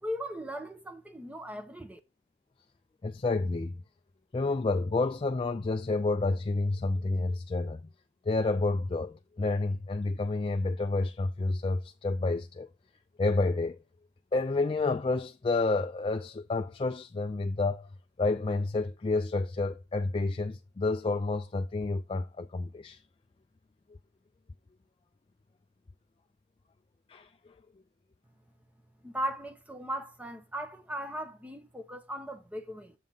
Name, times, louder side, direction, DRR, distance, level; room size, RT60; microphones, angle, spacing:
voice 1, 0.0-2.0 29.0-32.9, equal, 10° right, 0.9 m, -38 dB
voice 2, 3.0-3.8 4.3-7.8 8.3-12.7 13.2-13.8 14.3-17.9 18.2-23.0 27.1-27.3, left 3 dB, 30° left, 0.3 m, -29 dB
7.4 x 3.7 x 5.4 m
head